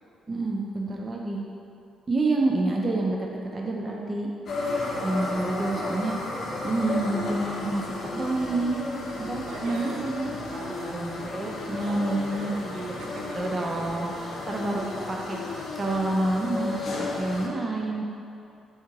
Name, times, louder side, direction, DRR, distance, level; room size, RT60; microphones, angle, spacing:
voice 1, 0.3-1.4 2.1-4.3 5.0-6.2 6.6-8.8 9.2-10.3 10.9-12.9 13.4-15.4 15.8-18.0, right 2 dB, 30° right, -1 dB, 0.4 m, -28 dB
sound 1, 4.5-17.5, left 3 dB, 55° left, 0.6 m, -33 dB
voice 2, 4.6-5.2 9.3-10.0 10.3-11.1 11.8-14.6, right 2 dB, 80° right, -2 dB, 0.7 m, -41 dB
3.7 x 2.8 x 4.6 m, 2.6 s
cardioid pair, 90°, 0 cm